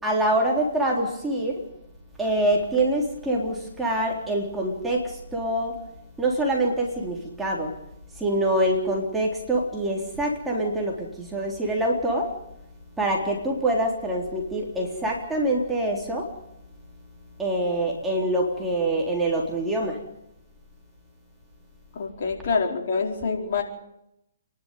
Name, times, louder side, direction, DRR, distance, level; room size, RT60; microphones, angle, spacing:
voice 1, 0.0-1.6 2.2-5.8 6.2-7.7 8.2-12.3 13.0-16.3 17.4-20.0, right 1 dB, 5° right, -2 dB, 3.8 m, -25 dB
voice 2, 21.9-23.6, left 4 dB, 50° left, 1 dB, 4.8 m, -26 dB
28.5 x 11.5 x 9.3 m, 0.82 s
hypercardioid pair, 145°, 0 cm